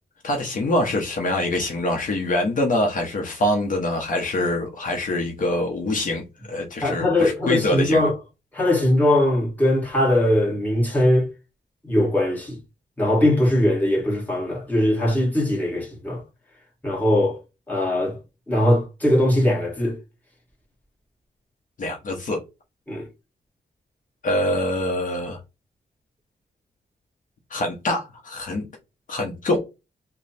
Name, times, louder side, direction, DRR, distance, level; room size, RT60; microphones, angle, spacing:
voice 1, 0.2-8.1 21.8-22.4 24.2-25.4 27.5-28.6 29.1-29.7, left 1 dB, 55° left, 0.9 m, -24 dB
voice 2, 6.8-8.2 8.5-11.3 11.8-12.6 13.0-16.2 16.8-17.4 17.7-18.2 18.5-20.0 22.9-23.1, left 1 dB, 10° left, 1.6 m, -20 dB
3.1 x 2.2 x 4.0 m
wide cardioid pair, 120°, 16 cm